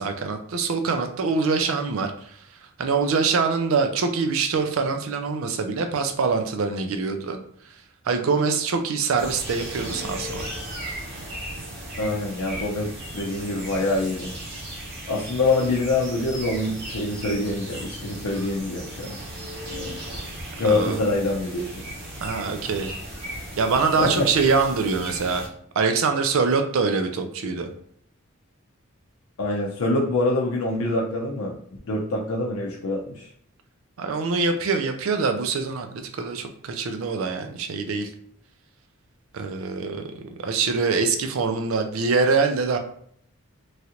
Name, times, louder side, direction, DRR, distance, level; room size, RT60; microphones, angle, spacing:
voice 1, 0.0-2.3 2.8-7.4 8.1-10.5 20.6-21.0 22.2-22.9 23.6-25.4 25.8-27.7 34.0-35.9 36.1-38.1 39.3-42.8, right 4 dB, 70° right, 6 dB, 0.4 m, -24 dB
sound 1, 9.2-25.5, right 1 dB, 50° right, 0.8 m, -36 dB
voice 2, 12.0-14.3 15.1-19.2 20.6-21.8 24.0-24.3 29.4-31.6 31.8-33.3, left 2 dB, 80° left, -2 dB, 0.5 m, -25 dB
3.1 x 2.4 x 2.8 m, 0.63 s
head